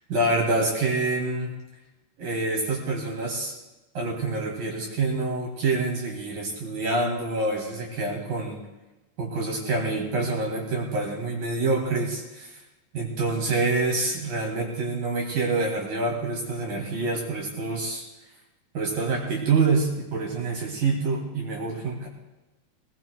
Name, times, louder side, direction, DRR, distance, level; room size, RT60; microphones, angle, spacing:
voice 1, 0.1-1.5 2.2-3.6 3.9-8.6 9.2-12.6 12.9-18.0 18.7-22.1, right 3 dB, 55° right, -1 dB, 3.1 m, -26 dB
21.5 x 19.5 x 2.3 m, 1.1 s
omnidirectional pair, 5.7 m